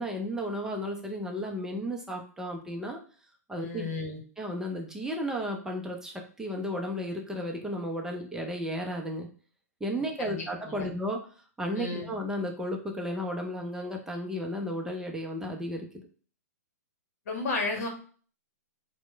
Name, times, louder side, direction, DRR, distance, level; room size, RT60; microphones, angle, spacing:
voice 1, 0.0-3.0 3.5-3.9 4.4-9.3 9.8-11.3 11.6-16.0, equal, 5° right, 1 dB, 0.5 m, -33 dB
voice 2, 3.6-4.2 10.2-10.9 11.8-12.1 17.3-17.9, left 3 dB, 60° left, 3 dB, 1.0 m, -33 dB
2.9 x 2.1 x 3.2 m, 0.42 s
hypercardioid pair, 125°, 9 cm